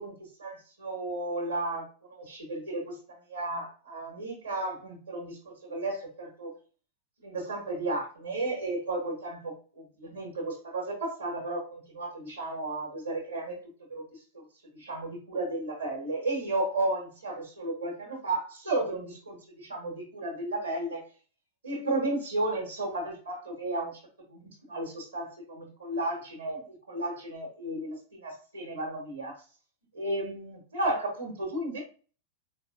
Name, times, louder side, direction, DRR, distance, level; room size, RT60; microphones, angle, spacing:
voice 1, 0.0-6.5 7.2-13.6 13.9-14.2 14.7-21.1 21.6-24.0 24.3-29.4 29.9-31.8, right 2 dB, 75° right, -3 dB, 1.5 m, -33 dB
4.2 x 3.4 x 2.4 m, 0.37 s
figure-of-eight pair, 90°, 0 cm